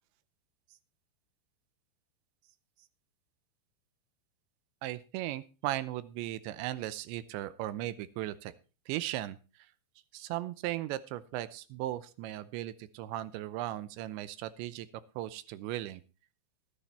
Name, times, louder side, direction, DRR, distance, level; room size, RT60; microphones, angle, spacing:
voice 1, 4.8-8.5 8.9-9.4 10.1-14.9 15.2-16.0, right 14 dB, 85° right, 15 dB, 3.1 m, -37 dB
12.5 x 10.0 x 4.3 m, 0.33 s
omnidirectional pair, 5.1 m